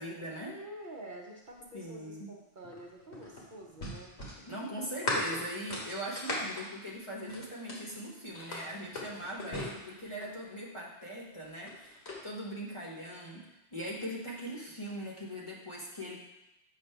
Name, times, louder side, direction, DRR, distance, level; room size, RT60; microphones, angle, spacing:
voice 1, 0.0-0.6 1.7-2.3 4.5-16.2, equal, 30° left, -4 dB, 0.9 m, -41 dB
voice 2, 0.5-4.1, right 1 dB, 50° right, -1 dB, 0.8 m, -47 dB
sound 1, 2.6-7.9 8.3-10.4 11.4-12.2, left 1 dB, 75° left, 1.6 m, -38 dB
6.7 x 2.7 x 5.5 m, 0.94 s
omnidirectional pair, 1.2 m